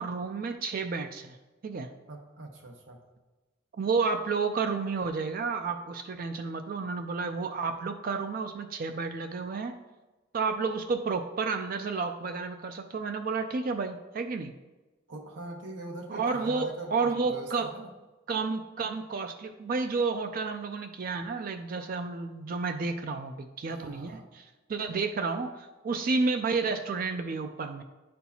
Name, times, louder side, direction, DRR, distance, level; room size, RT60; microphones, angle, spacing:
voice 1, 0.0-1.4 1.6-1.9 3.8-9.8 10.3-14.5 16.1-17.7 18.3-27.8, right 4 dB, 50° right, 6 dB, 0.4 m, -31 dB
voice 2, 2.1-3.0 15.1-17.9 23.7-24.3, right 2 dB, 85° right, 3 dB, 1.0 m, -42 dB
10.0 x 4.3 x 2.8 m, 1.1 s
head